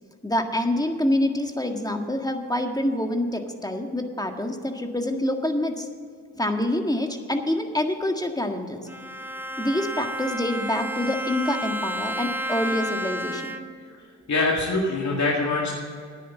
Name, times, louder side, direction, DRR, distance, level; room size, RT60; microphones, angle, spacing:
voice 1, 0.2-5.9 6.4-8.8 9.6-13.5, left 1 dB, 10° left, 5 dB, 1.7 m, -26 dB
Bowed string instrument, 8.9-13.9, equal, 5° right, 1.0 m, -31 dB
voice 2, 14.3-15.7, left 3 dB, 50° left, -3 dB, 2.1 m, -24 dB
10.0 x 9.5 x 7.1 m, 2.2 s
supercardioid pair, 45°, 37 cm